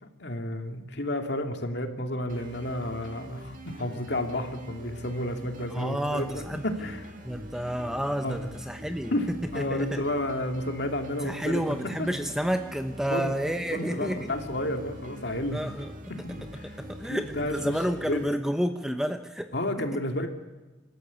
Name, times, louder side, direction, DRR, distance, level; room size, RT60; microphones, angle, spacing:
voice 1, 0.0-6.3 6.6-7.1 8.0-8.4 9.1-9.3 9.5-11.6 12.0-12.1 13.1-13.3 13.7-15.6 16.1-16.8 17.1-18.2 19.5-20.3, left 1 dB, 55° left, 5 dB, 2.6 m, -31 dB
sound 1, 2.3-18.3, right 1 dB, 40° right, 2.5 m, -44 dB
voice 2, 5.7-6.6 7.2-9.1 9.5-10.0 11.2-14.3 15.5-15.9 16.8-19.9, equal, 5° right, 7 dB, 0.9 m, -30 dB
26.0 x 14.0 x 9.5 m, 1.2 s
head